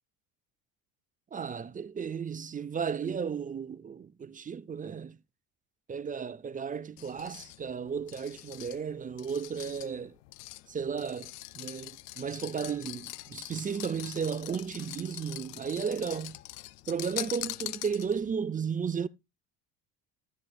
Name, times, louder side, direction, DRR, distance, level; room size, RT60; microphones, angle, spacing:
voice 1, 1.3-5.2 5.9-10.2 10.7-16.4 16.9-19.1, right 6 dB, 20° right, 0.4 m, -34 dB
creepy-scraping-clinking, 7.0-18.3, left 18 dB, 90° left, 0.6 m, -43 dB
12.0 x 10.0 x 2.3 m
hypercardioid pair, 70°, 46 cm